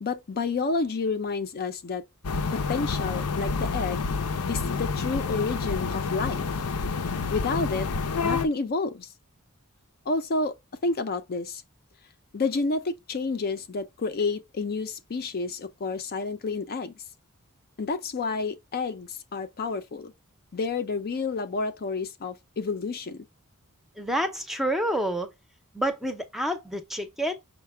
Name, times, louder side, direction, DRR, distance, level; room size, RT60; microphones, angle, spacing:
voice 1, 0.0-2.0 2.5-4.1 4.5-6.5 7.3-7.9 8.2-9.1 10.1-10.6 10.8-11.6 12.3-17.0 17.8-20.1 20.5-23.3, left 4 dB, 45° left, 0.5 m, -30 dB
sound 1, 2.2-8.5, left 4 dB, 85° left, 0.6 m, -28 dB
voice 2, 24.0-25.3 25.7-27.3, right 1 dB, ahead, 0.6 m, -28 dB
5.6 x 2.2 x 3.3 m
head